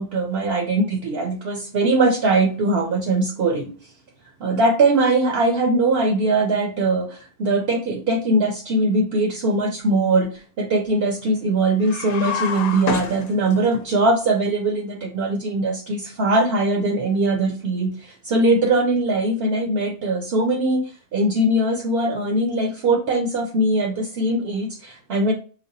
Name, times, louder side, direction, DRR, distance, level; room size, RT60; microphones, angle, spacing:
voice 1, 0.0-3.7 4.4-20.8 21.1-25.3, right 2 dB, 65° right, 3 dB, 0.7 m, -21 dB
sound 1, 11.8-13.8, left 6 dB, 75° left, 1.0 m, -28 dB
4.9 x 2.1 x 2.6 m, 0.39 s
omnidirectional pair, 1.2 m